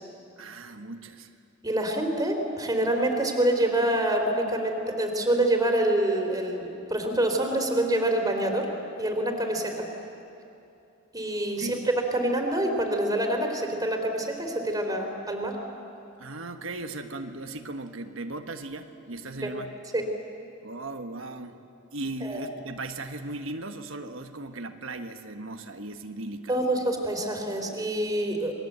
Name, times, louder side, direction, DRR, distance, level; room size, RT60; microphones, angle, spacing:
voice 1, 0.4-1.3 11.6-11.8 16.2-19.7 20.6-21.6 21.9-26.9, right 2 dB, 70° right, 6 dB, 1.3 m, -37 dB
voice 2, 1.6-8.7 9.0-9.9 11.1-11.8 12.1-15.6 19.4-19.5 19.9-20.1 22.2-22.4 26.5-28.5, right 1 dB, 20° right, 3 dB, 3.4 m, -26 dB
28.5 x 22.0 x 8.1 m, 2.7 s
head